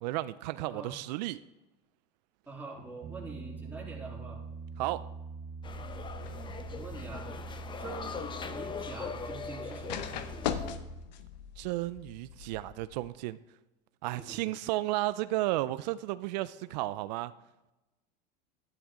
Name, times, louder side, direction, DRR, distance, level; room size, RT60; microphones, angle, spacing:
voice 1, 0.0-1.4 4.8-5.0 11.6-13.4 14.0-17.3, right 17 dB, 80° right, 14 dB, 0.4 m, -33 dB
voice 2, 0.6-1.0 2.5-4.4 6.7-7.4 7.7-8.2 8.5-10.0 14.1-14.5, right 3 dB, 10° right, -4 dB, 3.5 m, -44 dB
Piano, 3.0-11.1, right 4 dB, 25° right, 0.6 m, -44 dB
sound 1, 5.6-10.8, left 5 dB, 20° left, 0.8 m, -41 dB
sound 2, 5.9-13.1, left 8 dB, 90° left, 0.9 m, -42 dB
11.5 x 10.0 x 3.7 m, 1.0 s
supercardioid pair, 115°, 21 cm